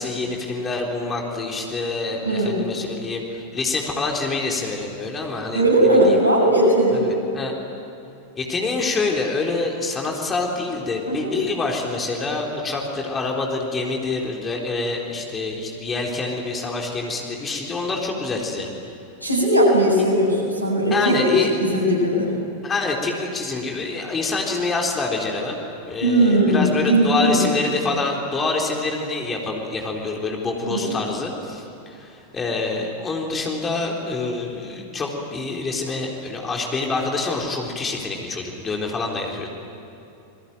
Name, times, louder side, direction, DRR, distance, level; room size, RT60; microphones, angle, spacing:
voice 1, 0.0-5.7 6.0-6.2 6.9-7.5 8.4-18.7 20.9-21.5 22.6-25.6 25.8-39.5, left 3 dB, 20° left, 0 dB, 3.9 m, -26 dB
voice 2, 2.2-2.7 5.5-7.1 11.1-11.4 19.2-21.3 21.6-22.3 26.0-27.5 30.7-31.0, right 1 dB, 90° left, -1 dB, 7.7 m, -18 dB
28.5 x 22.0 x 9.3 m, 2.8 s
figure-of-eight pair, 90°, 0 cm